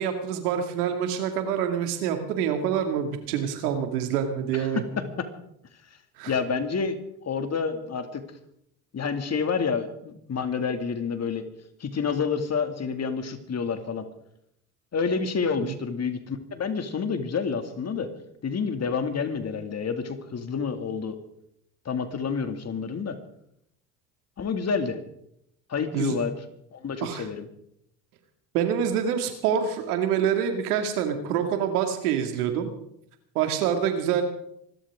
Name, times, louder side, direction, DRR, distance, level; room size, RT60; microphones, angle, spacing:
voice 1, 0.0-4.8 6.2-6.3 15.6-15.8 25.9-26.2 27.0-27.3 28.5-32.7 33.3-34.2, right 8 dB, 85° right, 6 dB, 2.5 m, -26 dB
voice 2, 4.5-4.8 6.3-7.0 7.2-8.2 8.9-11.5 11.8-14.1 14.9-18.1 18.4-21.2 21.9-23.2 24.4-25.0 25.7-26.3 26.7-27.5, left 5 dB, 35° left, 7 dB, 2.4 m, -28 dB
25.5 x 13.0 x 3.7 m, 0.75 s
hypercardioid pair, 75°, 44 cm